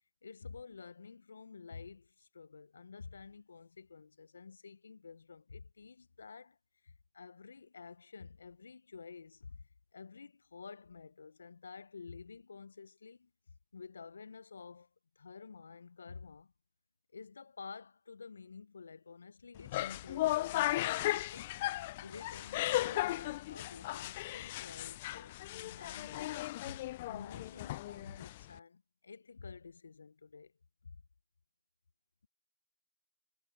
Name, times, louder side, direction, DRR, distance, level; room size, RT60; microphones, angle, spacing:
voice 1, 0.2-6.6 6.8-13.3 13.7-14.9 15.2-16.5 17.1-21.6 22.0-30.5 30.9-31.0, left 5 dB, 55° left, 1.3 m, -51 dB
sound 1, 19.6-28.6, left 17 dB, 25° left, 0.4 m, -36 dB
figure-of-eight pair, 150°, 0 cm